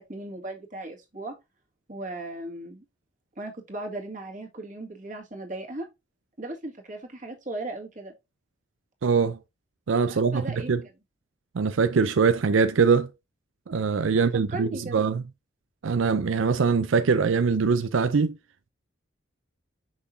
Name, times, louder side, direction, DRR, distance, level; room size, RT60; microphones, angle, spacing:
voice 1, 0.0-1.3 1.9-2.8 3.4-5.9 6.4-8.1 10.1-10.8 14.1-14.2 14.5-15.0, right 2 dB, 40° right, 2.1 m, -37 dB
voice 2, 9.0-9.4 9.9-10.8 11.5-13.1 13.7-15.2 15.8-18.4, right 5 dB, 90° right, 0.5 m, -23 dB
6.2 x 5.9 x 2.6 m
head